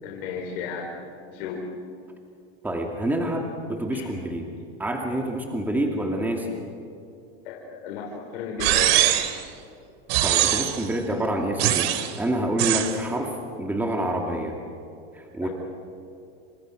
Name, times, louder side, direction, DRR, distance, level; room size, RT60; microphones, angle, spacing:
voice 1, 0.0-1.7 3.9-4.1 7.4-9.0 15.4-15.5, left 6 dB, 70° left, 0 dB, 4.1 m, -34 dB
voice 2, 2.6-4.5 4.8-6.5 10.2-14.6 15.1-15.5, right 1 dB, 5° right, 1 dB, 2.4 m, -27 dB
sound 1, 8.6-9.4 10.1-10.9 11.6-12.1 12.6-13.0, right 13 dB, 70° right, 2.3 m, -22 dB
29.5 x 26.0 x 6.3 m, 2.5 s
supercardioid pair, 145°, 31 cm